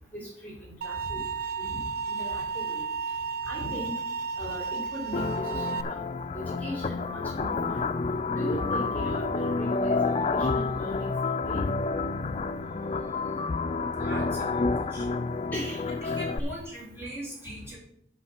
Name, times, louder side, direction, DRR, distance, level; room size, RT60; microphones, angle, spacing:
voice 1, 0.1-1.2 1.6-1.8 2.1-2.8 3.4-3.9 4.4-6.0 6.3-7.8 8.3-11.1 11.4-11.6 15.5-16.1 16.4-16.5, equal, 10° left, -4 dB, 3.1 m, -38 dB
sound 1, 0.8-5.8, right 5 dB, 50° right, 0.6 m, -33 dB
sound 2, 5.1-16.4, left 3 dB, 35° left, 0.4 m, -29 dB
voice 2, 14.0-15.0 15.9-17.8, right 1 dB, 15° right, -6 dB, 3.5 m, -40 dB
8.2 x 5.1 x 7.2 m, 0.69 s
head